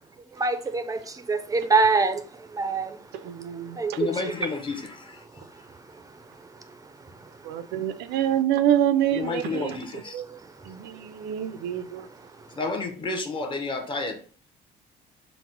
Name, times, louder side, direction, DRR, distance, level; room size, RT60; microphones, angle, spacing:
voice 1, 0.4-2.2 2.5-3.0 3.8-4.3, right 4 dB, 20° right, 0.4 m, -24 dB
voice 2, 3.1-4.1 7.4-12.1, right 11 dB, 80° right, 0.4 m, -27 dB
voice 3, 4.0-5.2 9.2-10.1 12.6-14.2, left 3 dB, 30° left, 0.7 m, -30 dB
3.9 x 2.0 x 4.3 m
cardioid pair, 110°, 17 cm